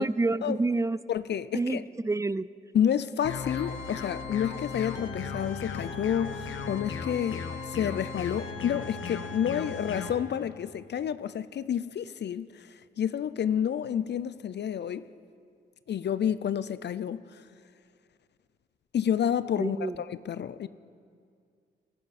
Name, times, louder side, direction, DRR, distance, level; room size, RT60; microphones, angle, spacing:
voice 1, 0.0-1.0 1.5-2.5 19.6-20.0, right 3 dB, 15° right, 19 dB, 0.4 m, -28 dB
voice 2, 1.1-1.8 2.7-12.7 13.0-15.0 15.9-17.2 18.9-20.7, left 9 dB, 60° left, 15 dB, 0.5 m, -29 dB
sound 1, 3.2-10.1, left 5 dB, 80° left, 1.3 m, -36 dB
21.0 x 12.5 x 4.2 m, 2.2 s
supercardioid pair, 50°, 20 cm